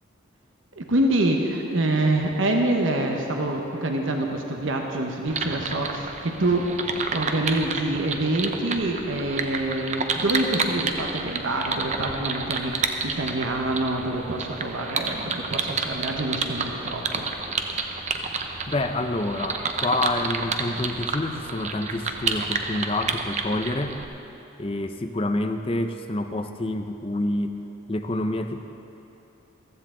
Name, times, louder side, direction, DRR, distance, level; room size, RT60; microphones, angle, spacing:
voice 1, 0.7-17.3, right 1 dB, 80° right, 2 dB, 1.1 m, -26 dB
sound 1, 5.3-24.1, right 4 dB, 35° right, 0.7 m, -30 dB
voice 2, 18.7-24.1 24.6-27.6 27.9-28.6, left 2 dB, 30° left, 7 dB, 0.5 m, -27 dB
15.0 x 14.5 x 3.8 m, 2.9 s
head